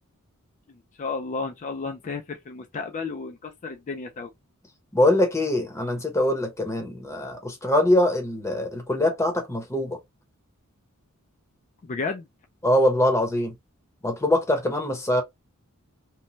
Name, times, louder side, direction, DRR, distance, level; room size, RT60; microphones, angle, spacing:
voice 1, 0.7-4.3 11.8-12.3, left 4 dB, 35° left, 0.4 m, -33 dB
voice 2, 4.9-10.0 12.6-13.5 14.0-15.2, left 1 dB, 15° left, 0.8 m, -23 dB
3.0 x 2.1 x 2.6 m
head